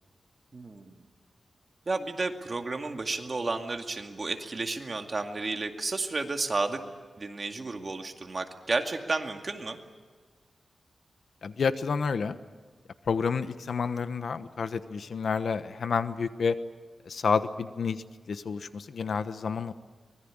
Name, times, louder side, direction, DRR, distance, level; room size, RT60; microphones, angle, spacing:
voice 1, 0.5-0.9 1.9-6.8 7.2-9.8, right 3 dB, 35° right, 5 dB, 2.2 m, -32 dB
voice 2, 11.4-12.4 13.1-16.5 17.1-19.7, left 5 dB, 65° left, 11 dB, 1.1 m, -29 dB
24.5 x 21.0 x 8.9 m, 1.5 s
wide cardioid pair, 120°, 0 cm